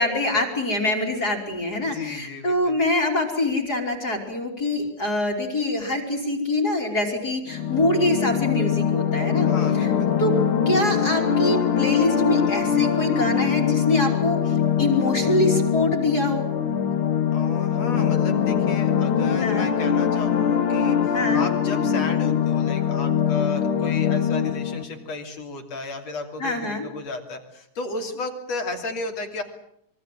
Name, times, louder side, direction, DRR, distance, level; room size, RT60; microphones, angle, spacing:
voice 1, 0.0-9.5 9.7-9.9 10.2-10.3 10.7-16.5 19.4-19.7 21.1-21.5 26.4-26.9, left 1 dB, 30° left, 2 dB, 3.8 m, -24 dB
voice 2, 1.8-2.8 9.4-10.1 17.3-29.4, left 3 dB, 60° left, 4 dB, 4.1 m, -34 dB
sound 1, 7.5-24.8, left 8 dB, 80° left, 3.5 m, -22 dB
25.5 x 22.5 x 7.7 m, 0.72 s
omnidirectional pair, 3.4 m